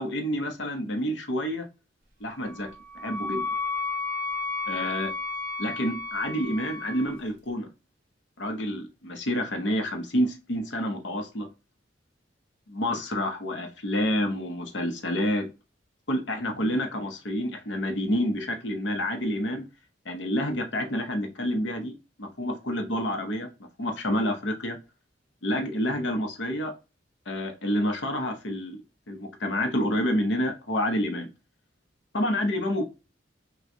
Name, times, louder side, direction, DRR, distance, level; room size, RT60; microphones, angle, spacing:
voice 1, 0.0-1.7 2.2-3.5 4.7-5.1 5.6-7.7 8.4-11.5 12.7-15.5 16.1-19.7 20.0-23.5 23.8-24.8 25.4-26.7 27.3-28.8 29.1-31.3 32.1-32.8, equal, 75° left, 0.8 m, -28 dB
Wind instrument woodwind instrument, 2.4-7.2, left 3 dB, 50° right, 0.9 m, -33 dB
5.9 x 2.3 x 2.7 m
head